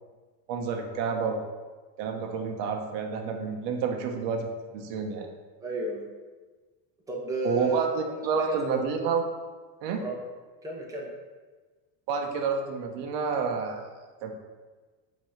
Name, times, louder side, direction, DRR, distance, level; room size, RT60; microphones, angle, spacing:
voice 1, 0.5-1.4 2.0-5.3 7.4-9.2 9.8-10.0 12.1-13.9 14.2-14.3, right 5 dB, 75° right, 3 dB, 1.0 m, -29 dB
voice 2, 5.6-6.0 7.1-7.8 8.4-8.8 10.0-10.2 10.6-11.1, right 2 dB, 5° right, -4 dB, 1.0 m, -31 dB
6.1 x 3.1 x 5.7 m, 1.3 s
cardioid pair, 145°, 48 cm